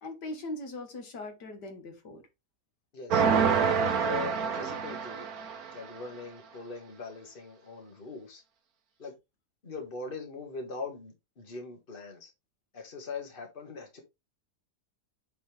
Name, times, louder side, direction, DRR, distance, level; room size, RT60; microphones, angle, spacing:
voice 1, 0.0-2.2, left 2 dB, 85° left, 2.2 m, -40 dB
voice 2, 2.9-5.3 5.7-8.4 9.0-9.1 9.6-12.3 12.7-14.0, left 4 dB, 35° left, 1.9 m, -41 dB
sound 1, 3.1-5.8, right 6 dB, 65° right, 1.4 m, -27 dB
8.4 x 4.3 x 3.3 m
omnidirectional pair, 1.7 m